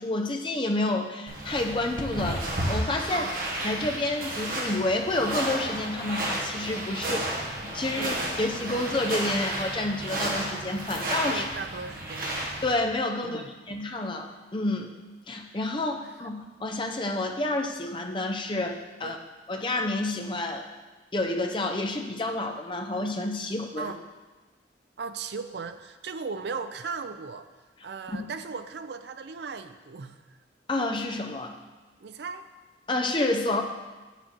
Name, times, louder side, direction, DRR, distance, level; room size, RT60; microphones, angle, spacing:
voice 1, 0.0-3.2 3.6-7.2 7.6-11.5 12.6-14.9 15.3-19.2 19.5-20.7 21.1-23.9 28.1-28.3 30.7-31.6 32.9-33.6, left 2 dB, 25° left, 3 dB, 0.6 m, -29 dB
sound 1, 1.3-12.8, right 1 dB, 50° right, 1.4 m, -32 dB
voice 2, 3.1-3.4 7.0-7.3 8.0-8.2 11.3-12.3 13.2-13.5 19.0-19.2 23.8-24.0 25.0-27.5 27.8-30.2 32.0-32.4, right 4 dB, 65° right, 10 dB, 0.5 m, -37 dB
7.7 x 7.0 x 4.4 m, 1.2 s
head